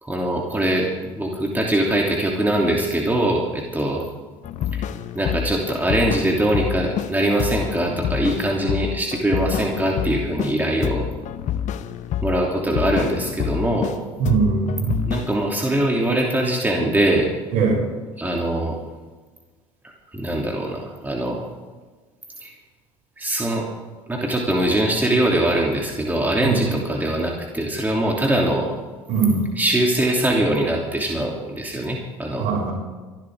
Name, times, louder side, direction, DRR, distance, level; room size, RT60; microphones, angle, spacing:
voice 1, 0.0-4.0 4.7-4.8 5.1-11.1 12.2-13.9 15.1-17.3 18.2-18.7 20.1-21.4 22.4-22.5 23.2-23.7 24.1-28.8 29.6-32.4, right 1 dB, 10° right, -1 dB, 2.8 m, -22 dB
sound 1, 4.4-7.1 7.4-10.6 10.8-14.0 14.3-15.5, left 10 dB, 50° left, 1.0 m, -28 dB
voice 2, 14.2-15.1 17.5-17.8 26.4-26.7 29.1-29.4 32.4-32.7, right 5 dB, 60° right, -2 dB, 6.6 m, -21 dB
26.0 x 12.0 x 3.6 m, 1.3 s
figure-of-eight pair, 60°, 16 cm